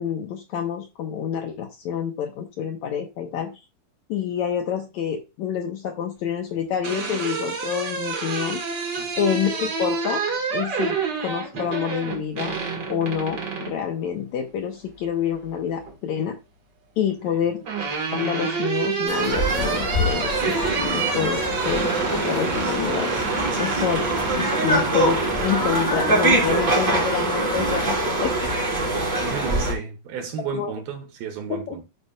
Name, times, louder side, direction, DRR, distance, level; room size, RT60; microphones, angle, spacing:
voice 1, 0.0-3.5 4.1-8.6 9.2-10.2 10.5-12.5 12.9-16.4 17.0-17.6 18.1-23.1 23.6-28.5 29.1-29.3 30.5-30.7 31.5-31.8, left 8 dB, 75° left, 1.7 m, -27 dB
sound 1, 6.5-13.8 15.3-15.9 17.2-25.7, right 5 dB, 50° right, 1.3 m, -29 dB
sound 2, 19.1-29.7, right 2 dB, 30° right, 3.7 m, -23 dB
voice 2, 29.2-31.8, right 7 dB, 80° right, 3.0 m, -33 dB
13.0 x 5.1 x 2.3 m
omnidirectional pair, 4.3 m